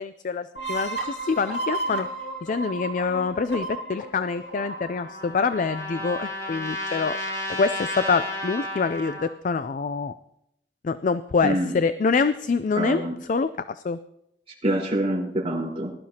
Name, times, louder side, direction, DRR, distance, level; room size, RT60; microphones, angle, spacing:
voice 1, 0.0-2.1 2.4-7.2 7.6-10.1 10.8-14.0, left 4 dB, 45° left, 12 dB, 0.4 m, -26 dB
sound 1, 0.5-6.0, right 2 dB, 80° left, 2.2 m, -33 dB
Trumpet, 4.6-9.3, left 1 dB, 20° left, 3.4 m, -33 dB
voice 2, 11.4-11.7 12.8-13.2 14.6-15.9, right 1 dB, 35° right, -5 dB, 4.5 m, -25 dB
20.5 x 12.0 x 2.9 m, 0.79 s
head